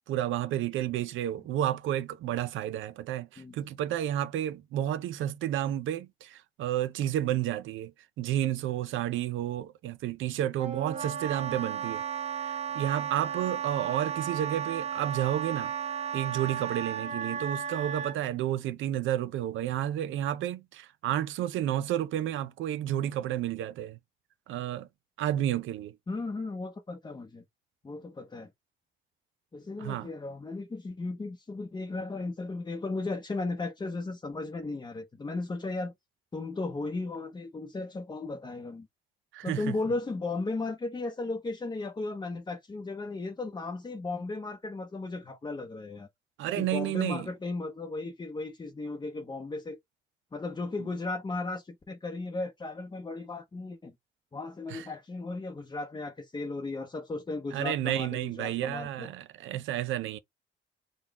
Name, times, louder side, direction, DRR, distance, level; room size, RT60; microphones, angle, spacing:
voice 1, 0.1-7.9 8.2-12.0 12.4-15.7 16.1-24.0 24.5-24.9 25.2-25.9 29.8-30.1 39.3-39.8 46.4-47.3 54.7-54.9 57.5-60.2, right 12 dB, 80° right, 0.5 m, -31 dB
Wind instrument woodwind instrument, 10.6-18.2, right 8 dB, 30° right, 0.7 m, -34 dB
voice 2, 26.1-27.4 27.8-28.5 29.5-35.9 36.3-38.9 39.4-46.1 46.6-49.8 50.3-53.9 54.3-59.1, left 3 dB, 20° left, 0.7 m, -35 dB
3.9 x 2.3 x 3.5 m
cardioid pair, 90°, 20 cm